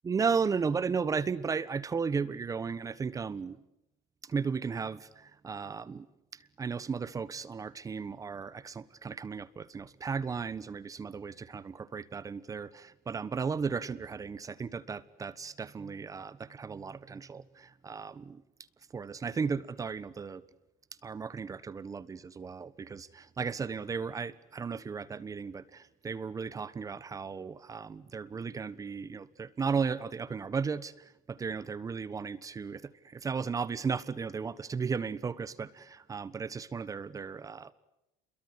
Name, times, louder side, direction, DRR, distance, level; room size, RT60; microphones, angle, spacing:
voice 1, 0.0-3.6 4.2-6.1 6.3-18.4 18.9-20.4 21.0-37.7, right 5 dB, 20° right, 16 dB, 1.2 m, -35 dB
29.5 x 22.5 x 8.2 m, 0.89 s
cardioid pair, 130°, 16 cm